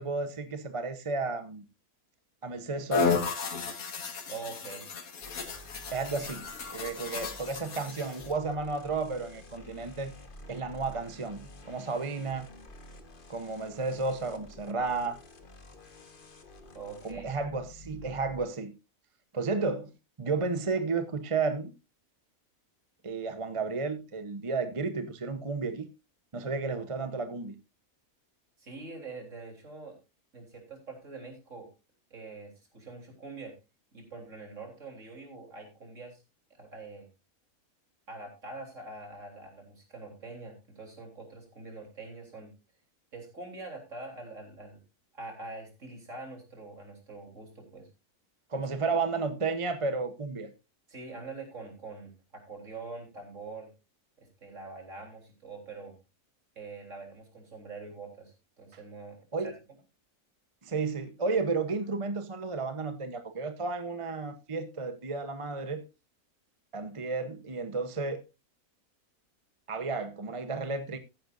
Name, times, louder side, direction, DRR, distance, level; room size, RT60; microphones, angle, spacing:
voice 1, 0.0-1.6 2.4-3.2 5.9-6.4 6.7-10.1 10.5-11.4 11.6-12.5 13.3-15.2 17.0-18.7 19.3-19.9 20.2-21.7 23.0-25.9 26.3-27.5 48.5-50.5 59.3-59.5 60.6-65.8 66.7-68.2 69.7-71.0, right 4 dB, 25° right, 0.8 m, -32 dB
sound 1, 2.9-8.3, left 4 dB, 70° left, 1.9 m, -33 dB
voice 2, 4.3-4.9 16.7-17.3 28.6-30.0 30.3-31.7 32.1-33.6 33.9-36.2 36.5-37.1 38.1-42.5 43.1-44.8 45.1-47.9 48.5-48.6 50.9-53.7 54.4-56.0 56.6-59.2 59.4-59.5, right 3 dB, 55° right, 3.9 m, -44 dB
sound 2, 5.2-18.4, left 1 dB, 35° left, 1.4 m, -50 dB
15.0 x 10.0 x 2.6 m
omnidirectional pair, 1.6 m